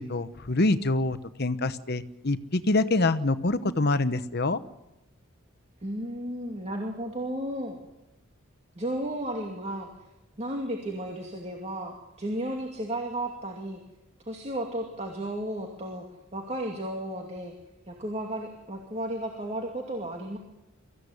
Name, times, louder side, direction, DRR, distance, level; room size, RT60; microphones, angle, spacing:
voice 1, 0.0-4.6, left 2 dB, 50° left, 12 dB, 1.0 m, -26 dB
voice 2, 5.8-7.8 8.8-9.9 10.4-13.8 14.3-16.1 16.3-17.5 17.9-20.4, right 1 dB, 30° right, 2 dB, 2.5 m, -33 dB
24.0 x 15.0 x 9.7 m, 0.96 s
head